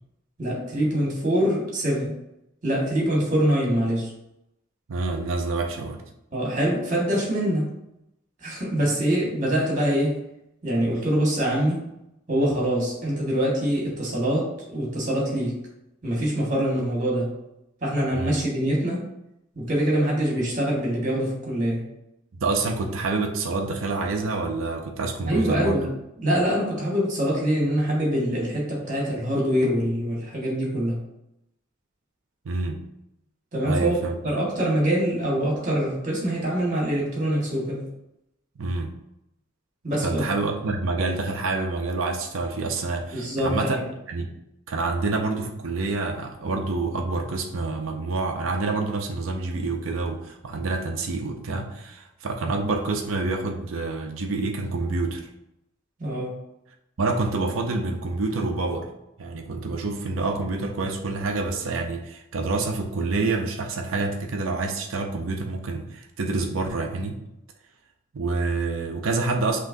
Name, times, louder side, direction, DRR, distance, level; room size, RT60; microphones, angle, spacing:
voice 1, 0.4-2.1 2.6-4.1 6.3-7.7 8.4-10.1 10.6-11.8 12.3-15.5 16.0-17.3 17.8-19.0 19.5-21.8 25.3-25.9 26.2-31.0 33.5-34.0 34.2-37.9 39.8-40.2 43.1-43.9 56.0-56.3, equal, 40° right, -4 dB, 1.6 m, -24 dB
voice 2, 4.9-6.0 18.1-18.4 22.4-25.9 32.4-32.8 33.6-34.3 38.6-38.9 40.0-43.8 44.1-44.3 44.7-55.3 57.0-58.9 59.2-67.2 68.1-69.6, right 3 dB, 85° right, 3 dB, 0.5 m, -27 dB
5.8 x 3.0 x 2.6 m, 0.86 s
head